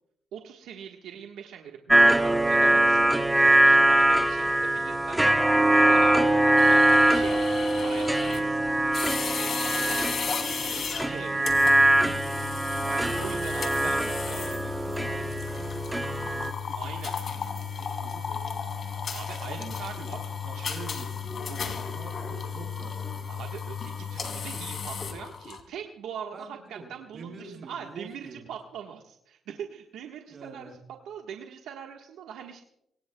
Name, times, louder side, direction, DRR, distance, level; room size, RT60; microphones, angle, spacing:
voice 1, 0.3-5.4 5.7-7.4 7.8-8.7 9.2-11.4 12.9-14.6 16.7-17.1 19.1-20.2 20.5-20.7 23.3-30.7 31.0-32.6, right 8 dB, 85° right, 2 dB, 1.3 m, -42 dB
sound 1, 1.9-16.5, right 1 dB, 10° right, 0.9 m, -22 dB
sound 2, 6.6-25.6, left 6 dB, 50° left, 2.7 m, -34 dB
voice 2, 9.7-12.2 12.8-13.9 14.3-14.7 15.0-16.9 17.5-18.4 19.4-20.1 20.4-23.1 23.4-23.8 26.3-28.5 30.3-30.8, right 4 dB, 45° right, 1 dB, 6.6 m, -46 dB
23.5 x 20.0 x 2.3 m, 0.76 s
cardioid pair, 90°, 0 cm